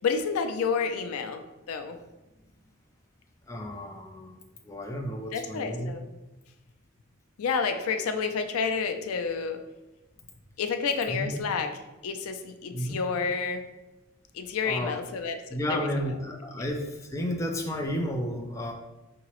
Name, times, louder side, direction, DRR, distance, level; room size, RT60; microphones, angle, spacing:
voice 1, 0.0-2.0 5.3-6.0 7.4-9.6 10.6-11.7 12.0-13.6 14.3-15.4 15.7-15.9, left 5 dB, 85° left, 7 dB, 0.4 m, -29 dB
voice 2, 3.5-6.0 11.1-11.4 12.7-13.0 14.6-15.0 15.5-18.7, equal, 15° left, 2 dB, 0.3 m, -32 dB
4.7 x 2.9 x 3.0 m, 1.0 s
head